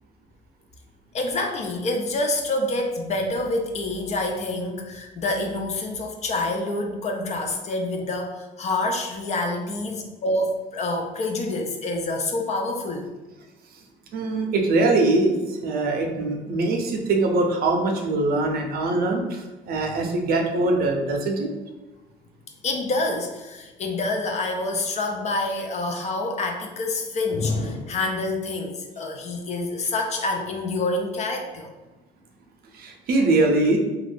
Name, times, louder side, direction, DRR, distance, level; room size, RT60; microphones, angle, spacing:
voice 1, 1.1-13.1 22.6-31.7, left 2 dB, 40° left, 3 dB, 0.5 m, -27 dB
voice 2, 14.1-15.3 15.6-21.5 32.7-33.8, right 2 dB, 65° right, 2 dB, 0.6 m, -22 dB
2.5 x 2.3 x 3.3 m, 1.1 s
cardioid pair, 110°, 17 cm